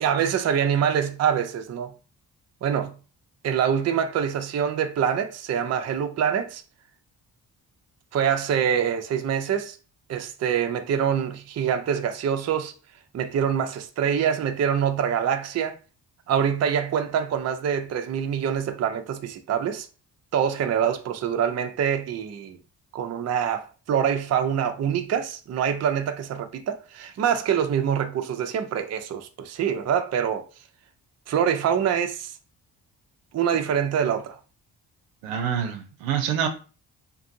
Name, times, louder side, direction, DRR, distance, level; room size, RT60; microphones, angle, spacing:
voice 1, 0.0-1.9 2.6-2.9 3.4-6.6 8.1-9.8 10.1-12.7 13.1-15.8 16.3-19.9 20.3-22.6 22.9-30.5 31.3-32.3 33.3-34.4, right 8 dB, 35° right, 0.5 m, -25 dB
voice 2, 35.2-36.5, right 8 dB, 80° right, 0.6 m, -26 dB
2.6 x 2.5 x 2.6 m
hypercardioid pair, 45°, 49 cm